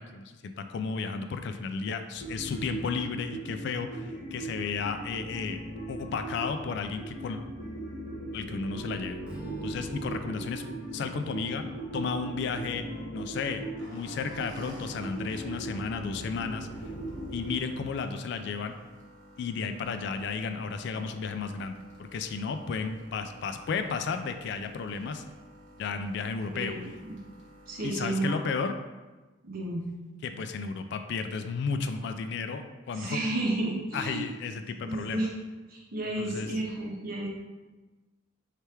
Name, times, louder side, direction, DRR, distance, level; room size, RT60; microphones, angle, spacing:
voice 1, 0.0-5.6 5.9-7.4 8.3-9.2 9.6-10.6 10.9-11.6 11.9-12.8 13.1-16.7 17.3-18.8 19.4-25.2 25.8-26.8 27.8-28.8 30.2-33.2 33.9-35.3 36.2-36.5, left 5 dB, 60° left, 8 dB, 0.3 m, -33 dB
sound 1, 2.2-17.6, right 1 dB, 85° left, 1.3 m, -39 dB
Strum, 9.2-13.6, right 1 dB, 5° right, 0.7 m, -48 dB
sound 2, 13.8-28.0, equal, 65° right, 1.3 m, -53 dB
voice 2, 26.5-27.2 27.7-28.5 29.4-29.9 32.9-34.2 34.9-35.3 35.7-37.3, right 2 dB, 45° right, -2 dB, 0.9 m, -32 dB
3.3 x 3.3 x 4.4 m, 1.2 s
head